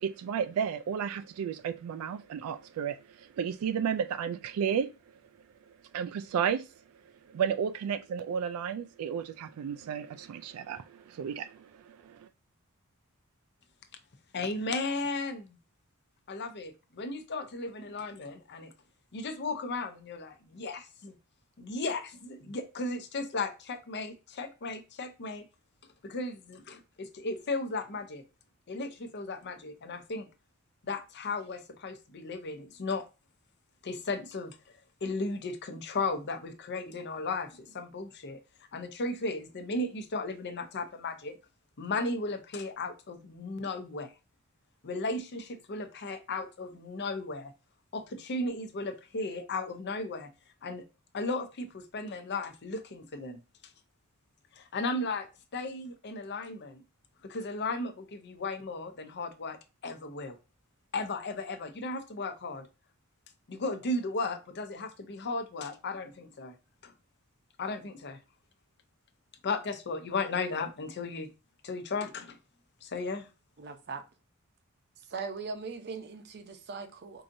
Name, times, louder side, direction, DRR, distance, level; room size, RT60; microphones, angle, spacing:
voice 1, 0.0-4.9 5.9-6.7 7.3-12.3, right 7 dB, 85° right, 0.3 m, -33 dB
voice 2, 14.3-15.6 16.3-18.7 19.1-21.1 21.6-25.4 26.0-28.2 28.7-30.3 30.8-33.0 33.8-34.6 35.0-38.4 38.7-41.4 41.8-44.1 44.8-47.5 47.9-50.3 50.6-50.8 51.1-53.4 54.6-55.3 55.5-56.8 57.2-59.6 59.8-60.4 60.9-62.7 63.5-66.5 66.8-66.9 67.6-68.2 69.4-71.3 71.6-72.4 72.8-73.3, left 3 dB, 50° left, 0.6 m, -35 dB
voice 3, 73.6-74.0 75.1-77.2, right 4 dB, 50° right, 0.6 m, -39 dB
4.7 x 2.7 x 2.5 m
head